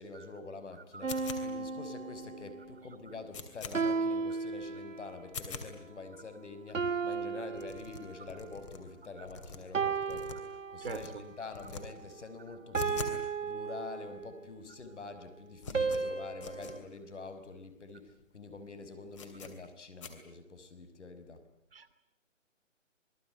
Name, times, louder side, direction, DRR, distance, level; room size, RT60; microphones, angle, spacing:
voice 1, 0.0-21.4, left 3 dB, 65° left, 10 dB, 5.9 m, -46 dB
sound 1, 1.0-2.7 3.7-5.3 6.7-8.4 9.7-11.3 12.7-14.5 15.7-16.8, right 4 dB, 80° right, 2.6 m, -35 dB
sound 2, 1.1-1.7 2.2-2.3 2.6-2.7 3.0-3.8 4.2-4.3 4.6-4.8 5.2-5.7 6.2-6.3 6.5-6.6 6.8-6.9 7.2-7.3 7.5-8.8 9.2-10.6 10.8-11.1 11.5-11.8 12.1-13.2 13.5-13.6 14.2-14.3 14.5-14.9 15.1-16.8 17.2-17.3 17.5-17.6 18.1-18.2 18.5-18.6 19.1-19.5 20.0-20.1, left 5 dB, 25° left, 2.9 m, -44 dB
voice 2, 10.8-11.2 21.7-21.9, right 4 dB, 50° right, 10 dB, 2.4 m, -43 dB
27.0 x 21.0 x 9.2 m, 0.78 s
hypercardioid pair, 170°, 38 cm